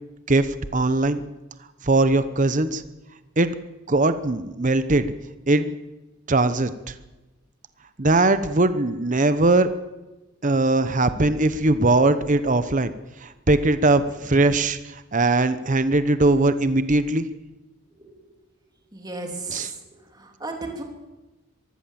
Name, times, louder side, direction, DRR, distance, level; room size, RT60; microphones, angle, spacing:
voice 1, 0.7-1.2 1.8-2.8 3.4-3.5 3.9-5.1 5.5-5.7 6.3-6.9 8.0-9.7 10.4-12.9 13.2-17.3 19.5-19.7, right 2 dB, 35° right, 12 dB, 0.9 m, -20 dB
voice 2, 18.9-19.8 20.1-20.8, right 3 dB, 20° right, 2 dB, 3.0 m, -34 dB
22.5 x 15.5 x 7.6 m, 1.1 s
head